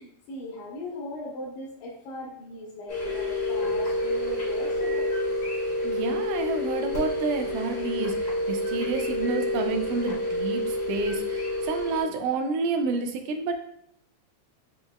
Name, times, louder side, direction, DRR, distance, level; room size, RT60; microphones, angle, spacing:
voice 1, 0.0-5.1, left 1 dB, 75° left, -4 dB, 2.2 m, -38 dB
sound 1, 2.9-12.0, left 1 dB, 55° left, 1.0 m, -28 dB
voice 2, 5.8-13.6, right 4 dB, 80° right, 5 dB, 2.0 m, -29 dB
5.4 x 2.9 x 2.2 m, 0.71 s
omnidirectional pair, 3.9 m